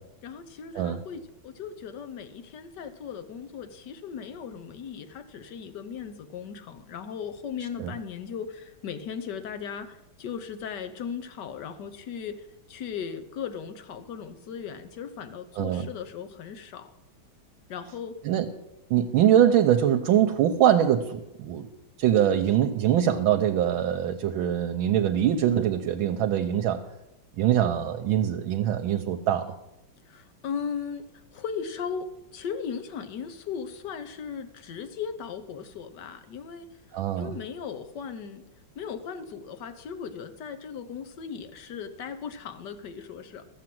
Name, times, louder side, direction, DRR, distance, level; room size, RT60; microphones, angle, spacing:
voice 1, 0.2-16.9 17.7-18.2 30.0-31.0 31.3-36.7 37.2-38.4 38.7-43.4, left 7 dB, 60° left, 10 dB, 1.5 m, -37 dB
voice 2, 18.9-21.7 22.0-26.8 27.4-29.6 36.9-37.4, right 10 dB, 80° right, 5 dB, 1.5 m, -23 dB
14.0 x 7.4 x 7.7 m, 0.92 s
omnidirectional pair, 2.2 m